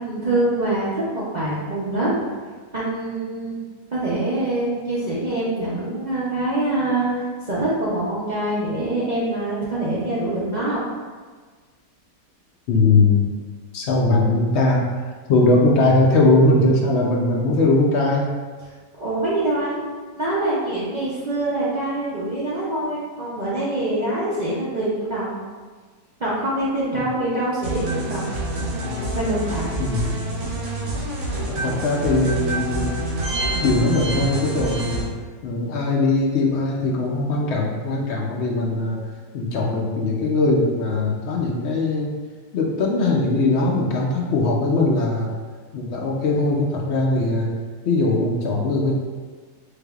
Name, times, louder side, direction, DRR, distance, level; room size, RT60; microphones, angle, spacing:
voice 1, 0.0-2.1 2.7-3.6 3.9-10.8 19.0-19.8 20.2-25.4 26.2-28.2 29.1-29.7, right 1 dB, 70° right, -10 dB, 0.4 m, -24 dB
voice 2, 12.7-13.3 13.7-14.8 15.3-18.3 26.9-27.0 29.8-30.2 31.5-33.0 33.6-35.0 35.4-39.0 39.3-42.1 42.5-45.3 45.7-47.5 47.8-49.0, left 2 dB, 75° left, -2 dB, 0.6 m, -20 dB
sound 1, 27.6-35.0, right 1 dB, 85° right, 1.5 m, -27 dB
4.5 x 3.3 x 2.3 m, 1.5 s
omnidirectional pair, 1.8 m